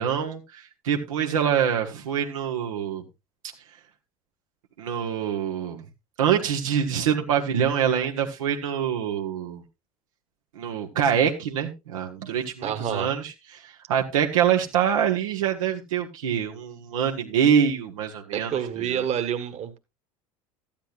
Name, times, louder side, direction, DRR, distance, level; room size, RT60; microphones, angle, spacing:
voice 1, 0.0-3.0 4.8-5.8 6.2-9.6 10.5-19.0, right 8 dB, 70° right, 2 dB, 1.3 m, -25 dB
voice 2, 12.6-13.1 18.3-19.8, right 9 dB, 35° right, 8 dB, 1.6 m, -28 dB
14.0 x 10.5 x 2.5 m, 0.23 s
figure-of-eight pair, 70°, 18 cm